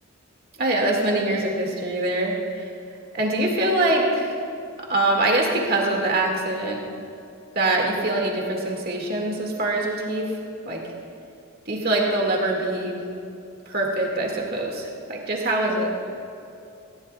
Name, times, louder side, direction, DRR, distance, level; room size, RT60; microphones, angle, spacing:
voice 1, 0.6-2.7 3.1-4.3 4.8-6.8 7.6-10.3 10.7-10.8 11.7-13.0 13.7-15.9, right 2 dB, 45° right, -1 dB, 2.0 m, -24 dB
19.0 x 17.0 x 2.3 m, 2.6 s
head